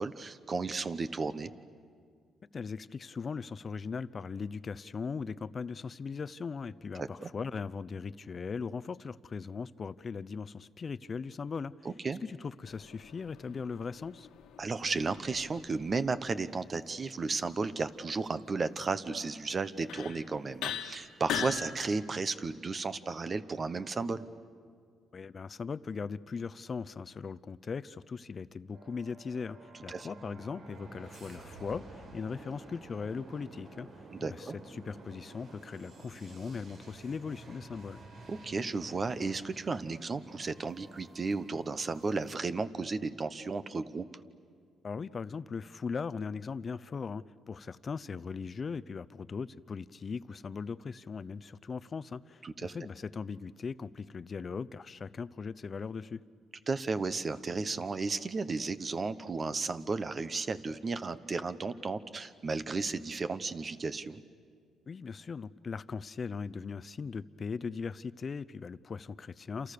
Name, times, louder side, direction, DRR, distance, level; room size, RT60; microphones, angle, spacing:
voice 1, 0.0-1.5 7.0-7.3 11.8-12.2 14.6-24.2 29.9-30.1 34.1-34.6 38.3-44.1 52.4-52.7 56.7-64.2, right 4 dB, 35° right, 12 dB, 1.1 m, -34 dB
voice 2, 2.5-11.7 12.2-14.3 25.1-33.9 34.2-38.0 44.8-56.2 64.9-69.7, left 5 dB, 40° left, 17 dB, 0.7 m, -39 dB
sound 1, 12.7-16.1 19.2-19.3 19.9-20.2 20.6-21.6, left 9 dB, 90° left, 1.9 m, -40 dB
sound 2, 28.7-42.5, right 2 dB, 75° right, 5.0 m, -51 dB
28.5 x 27.5 x 6.8 m, 2.1 s
cardioid pair, 90°, 0 cm